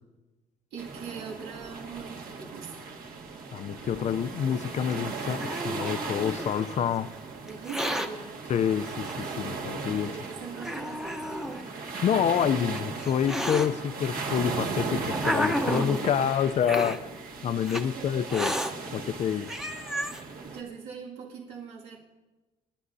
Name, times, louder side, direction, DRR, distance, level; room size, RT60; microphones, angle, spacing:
voice 1, 0.7-2.9 7.4-8.4 10.0-11.7 15.6-16.3 17.0-18.1 19.2-19.6 20.4-22.0, right 6 dB, 75° right, 2.2 m, -42 dB
sound 1, 0.8-20.6, right 4 dB, 60° right, 1.9 m, -37 dB
voice 2, 3.5-7.1 8.5-10.1 12.0-17.1 17.4-18.6 18.9-19.5, left 8 dB, 40° left, 0.5 m, -27 dB
Hiss, 4.9-6.5 7.5-8.1 9.0-9.1 10.0-10.1 10.6-11.6 12.5-13.7 14.5-16.0 16.6-17.0 17.7-17.8 18.3-18.7 19.2-19.3 19.5-20.2, equal, 5° right, 0.9 m, -31 dB
29.0 x 11.0 x 2.7 m
cardioid pair, 110°, 17 cm